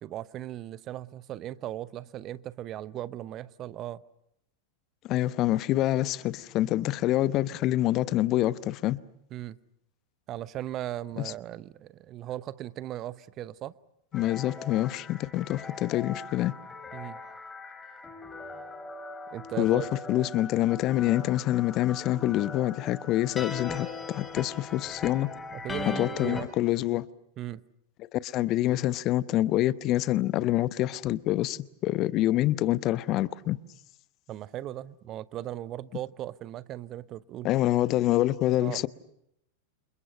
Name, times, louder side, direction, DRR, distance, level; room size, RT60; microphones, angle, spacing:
voice 1, 0.0-4.0 9.3-9.6 10.3-13.7 16.9-17.2 19.3-19.9 25.5-26.5 27.4-27.6 34.3-37.5 38.6-38.8, right 13 dB, 35° right, 0.9 m, -38 dB
voice 2, 5.0-9.0 11.2-11.3 14.1-16.5 19.6-25.3 25.9-27.1 28.0-33.6 37.4-38.9, left 15 dB, 35° left, 0.9 m, -26 dB
sound 1, 14.1-26.4, left 3 dB, 15° left, 3.4 m, -40 dB
30.0 x 28.0 x 5.7 m
figure-of-eight pair, 90°, 0 cm